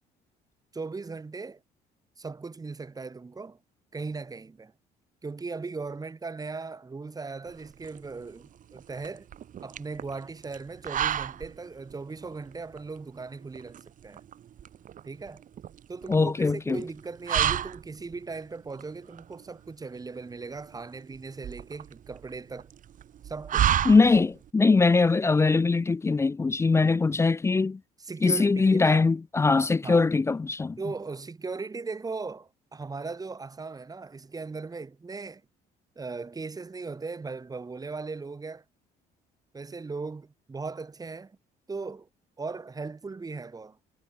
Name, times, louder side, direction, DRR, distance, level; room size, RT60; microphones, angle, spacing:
voice 1, 0.7-1.6 2.2-3.6 3.9-4.7 5.2-9.3 9.6-14.2 15.0-15.4 15.9-22.7 23.2-23.8 28.0-29.1 29.8-30.1 30.8-35.4 36.0-38.6 39.5-41.4 41.7-42.1 42.4-43.8, right 4 dB, 20° right, 4.0 m, -38 dB
sound 1, 7.5-24.5, right 10 dB, 50° right, 1.9 m, -33 dB
voice 2, 16.1-16.8 23.8-27.8 28.2-30.8, left 4 dB, 15° left, 0.4 m, -22 dB
cardioid pair, 110°, 17 cm